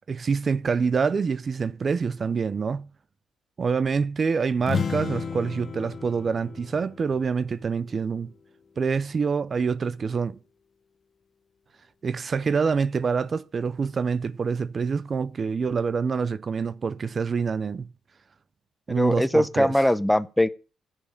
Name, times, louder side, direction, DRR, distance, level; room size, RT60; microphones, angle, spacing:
voice 1, 0.1-2.9 3.6-8.3 8.8-10.4 12.0-17.9 18.9-19.7, right 5 dB, 40° right, 0.4 m, -26 dB
sound 1, 4.6-8.3, left 6 dB, 45° left, 0.6 m, -33 dB
voice 2, 18.9-20.5, left 1 dB, 5° left, 0.6 m, -22 dB
14.5 x 4.9 x 5.2 m
cardioid pair, 90°, 0 cm